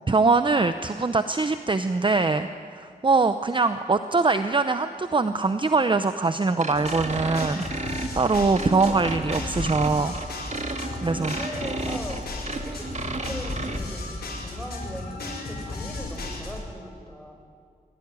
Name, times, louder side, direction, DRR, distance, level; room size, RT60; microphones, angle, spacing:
voice 1, 0.1-10.1 11.0-11.3, right 3 dB, 30° right, 10 dB, 0.7 m, -23 dB
sound 1, 6.6-13.8, right 3 dB, 45° right, 1.9 m, -33 dB
sound 2, 6.7-16.6, left 2 dB, 80° left, 4.6 m, -34 dB
voice 2, 11.0-12.9 13.2-17.4, equal, ahead, 3 dB, 4.5 m, -39 dB
22.5 x 16.5 x 9.7 m, 2.2 s
wide cardioid pair, 75°, 16 cm